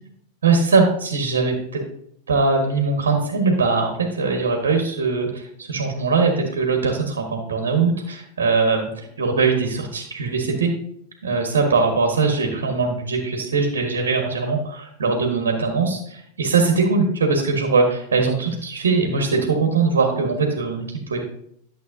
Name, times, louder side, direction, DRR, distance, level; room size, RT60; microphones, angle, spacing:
voice 1, 0.4-1.8 2.3-10.7 11.2-21.2, right 4 dB, 65° right, 3 dB, 1.4 m, -21 dB
12.0 x 7.2 x 2.7 m, 0.70 s
figure-of-eight pair, 90°, 0 cm